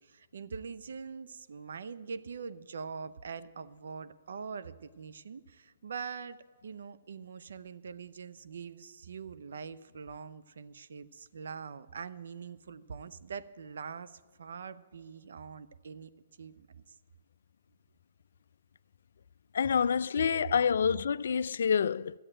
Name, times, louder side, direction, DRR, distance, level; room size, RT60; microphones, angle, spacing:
voice 1, 0.0-6.4 6.6-16.1 16.4-17.0, right 5 dB, 75° right, 0.6 m, -43 dB
voice 2, 19.5-22.2, left 7 dB, 70° left, 0.3 m, -27 dB
12.5 x 7.9 x 8.8 m
hypercardioid pair, 135°, 0 cm